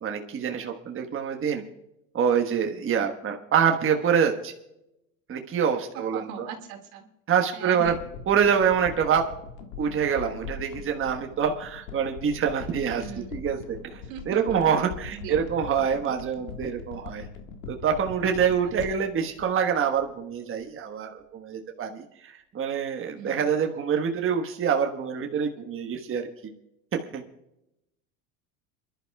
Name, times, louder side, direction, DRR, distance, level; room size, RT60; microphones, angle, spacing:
voice 1, 0.0-1.6 2.1-4.5 5.3-6.5 7.3-7.9 8.3-9.3 9.8-17.3 17.7-26.3 26.9-27.2, right 7 dB, 30° right, 3 dB, 1.3 m, -26 dB
voice 2, 5.9-7.1 7.5-8.0 12.9-13.4 14.1-14.7 15.2-15.4 23.1-23.4, right 7 dB, 75° right, 3 dB, 2.4 m, -39 dB
sound 1, 7.8-20.3 20.6-20.7, left 5 dB, 80° left, 1.7 m, -41 dB
28.0 x 11.5 x 2.3 m, 0.84 s
hypercardioid pair, 90°, 41 cm